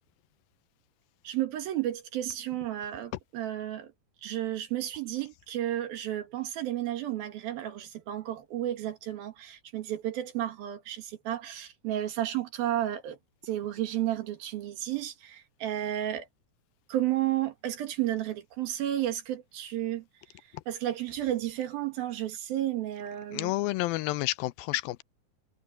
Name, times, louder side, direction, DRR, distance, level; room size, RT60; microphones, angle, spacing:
voice 1, 1.2-3.9 4.2-13.2 13.4-16.3 16.9-20.0 20.7-23.6, right 13 dB, 80° right, 3.7 m, -32 dB
voice 2, 23.3-25.0, left 18 dB, 85° left, 2.4 m, -30 dB
omnidirectional pair, 4.2 m